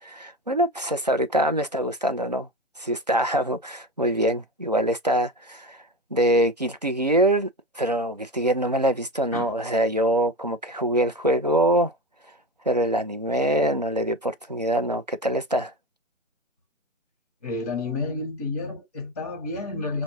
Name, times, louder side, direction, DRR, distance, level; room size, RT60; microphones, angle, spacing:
voice 1, 0.0-2.5 2.8-5.8 6.1-7.5 7.8-11.9 12.7-15.7, right 1 dB, 35° right, 0.4 m, -24 dB
voice 2, 17.4-20.0, left 3 dB, 10° left, 0.8 m, -30 dB
6.0 x 2.0 x 2.7 m
figure-of-eight pair, 150°, 37 cm